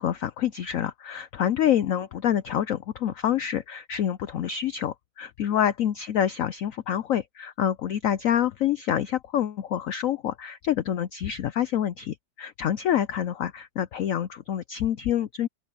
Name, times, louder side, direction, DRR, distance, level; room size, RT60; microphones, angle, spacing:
voice 1, 0.0-15.5, left 10 dB, 90° left, 0.7 m, -27 dB
open air
omnidirectional pair, 2.1 m